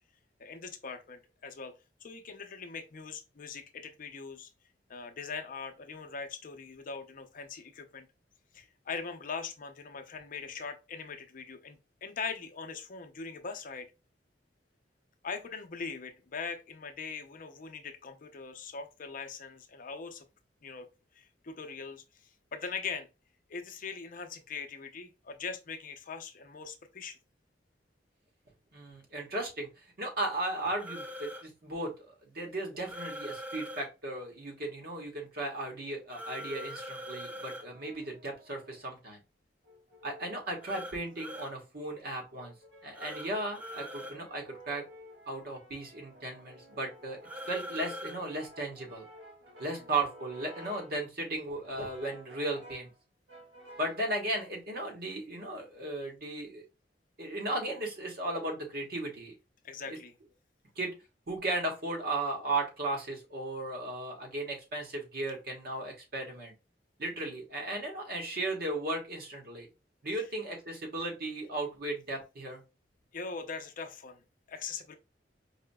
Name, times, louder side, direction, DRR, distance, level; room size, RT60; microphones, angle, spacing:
voice 1, 0.4-1.7 2.0-4.5 4.9-8.1 8.5-13.9 15.2-20.2 20.6-20.9 21.2-22.0 22.5-23.1 23.5-27.2 49.7-49.9 59.6-60.1 73.1-75.0, left 5 dB, 50° left, 0.6 m, -41 dB
voice 2, 28.7-29.7 30.0-39.2 40.0-42.5 42.8-44.8 45.3-49.0 49.6-52.9 53.8-56.6 57.2-59.3 59.9-60.0 60.8-60.9 61.3-66.5 67.0-69.7 70.0-72.6, right 2 dB, 60° right, 1.3 m, -36 dB
sound 1, 30.8-31.4 32.8-33.9 36.1-37.6 40.6-41.5 42.9-43.3 43.5-44.1 47.2-48.2, equal, 10° right, 0.5 m, -42 dB
Brass instrument, 37.0-38.9 39.6-41.7 42.4-51.0 51.6-53.0 53.3-54.1, right 1 dB, 85° right, 1.5 m, -53 dB
4.8 x 2.7 x 2.2 m
head